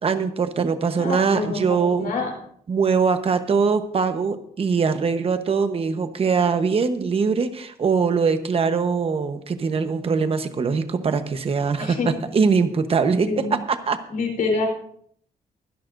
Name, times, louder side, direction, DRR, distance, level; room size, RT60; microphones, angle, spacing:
voice 1, 0.0-2.1 2.7-13.6 13.9-14.0, right 5 dB, 40° right, 9 dB, 1.0 m, -22 dB
voice 2, 1.0-2.3 11.8-12.1 13.3-13.5 14.1-14.7, left 3 dB, 65° left, 1 dB, 3.7 m, -26 dB
23.5 x 11.0 x 2.6 m, 0.64 s
wide cardioid pair, 160°, 16 cm